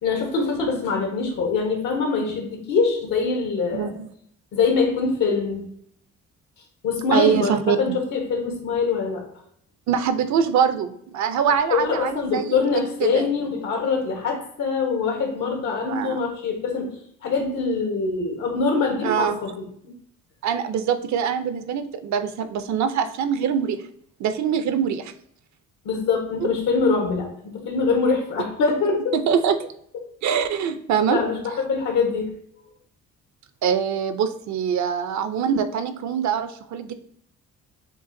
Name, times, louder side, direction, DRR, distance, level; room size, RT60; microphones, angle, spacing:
voice 1, 0.0-3.9 4.5-5.6 6.8-9.2 11.7-16.9 17.2-19.5 25.8-29.1 31.1-32.3, left 4 dB, 85° left, 2 dB, 1.4 m, -23 dB
voice 2, 3.7-4.1 7.1-8.0 9.9-12.5 13.0-13.2 15.9-16.2 19.0-19.4 20.4-23.8 24.2-25.1 29.1-29.7 30.2-31.2 33.6-36.9, right 7 dB, 70° right, 10 dB, 0.6 m, -23 dB
6.7 x 2.5 x 2.6 m, 0.69 s
cardioid pair, 90°, 30 cm